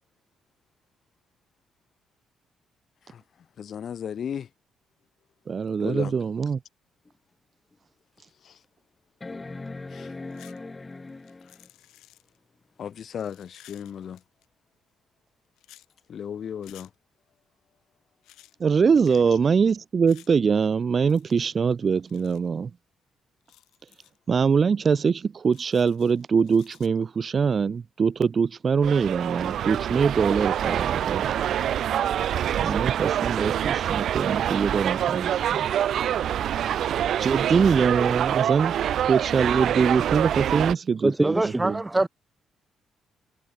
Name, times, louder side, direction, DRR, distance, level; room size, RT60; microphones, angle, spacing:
voice 1, 3.6-4.5 5.8-6.2 8.4-8.6 9.9-10.1 10.4-10.6 11.4-11.5 12.8-14.2 16.1-16.9, left 8 dB, 60° left, 1.7 m, -35 dB
voice 2, 5.5-6.6 18.6-22.7 24.3-31.3 32.6-35.7 37.2-38.7 39.1-41.3 41.6-41.8, right 6 dB, 40° right, 1.2 m, -23 dB
sound 1, 7.1-7.2 7.7-7.8 9.2-11.7 13.4-13.5, left 3 dB, 20° left, 7.1 m, -39 dB
sound 2, 10.3-10.6 10.9-12.4 13.1-14.5 15.6-15.9 16.6-16.9 18.2-18.6 20.1-20.3 21.0-21.5 22.0-22.5 23.4-24.2 25.5-26.9, left 15 dB, 90° left, 4.4 m, -54 dB
sound 3, 28.8-40.7, right 10 dB, 70° right, 0.9 m, -26 dB
voice 3, 41.0-42.1, right 2 dB, 15° right, 2.6 m, -23 dB
cardioid pair, 90°, 0 cm